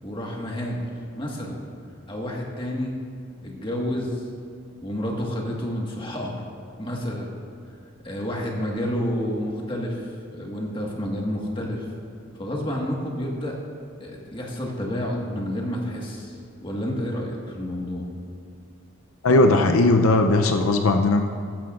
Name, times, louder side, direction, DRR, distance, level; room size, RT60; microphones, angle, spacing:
voice 1, 0.0-0.9 1.2-1.6 2.1-3.0 3.4-4.2 4.8-6.5 6.8-7.3 8.0-11.9 12.4-13.6 14.0-18.1, equal, 25° left, -2 dB, 1.6 m, -29 dB
voice 2, 19.2-21.3, left 2 dB, 80° left, 5 dB, 0.6 m, -18 dB
15.0 x 13.0 x 2.5 m, 2.4 s
head